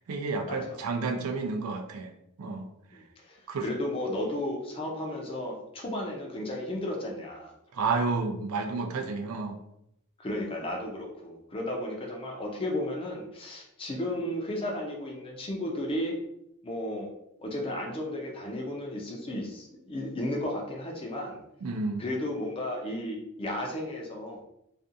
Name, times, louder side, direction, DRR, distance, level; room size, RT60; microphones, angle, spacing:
voice 1, 0.1-2.1 2.4-2.7 3.5-3.7 7.7-9.6 21.6-22.0, right 4 dB, 75° right, 5 dB, 0.4 m, -30 dB
voice 2, 2.9-7.5 10.2-16.2 16.6-17.1 17.4-21.4 22.0-24.4, left 1 dB, 25° left, 0 dB, 0.5 m, -34 dB
2.5 x 2.2 x 2.6 m, 0.79 s
head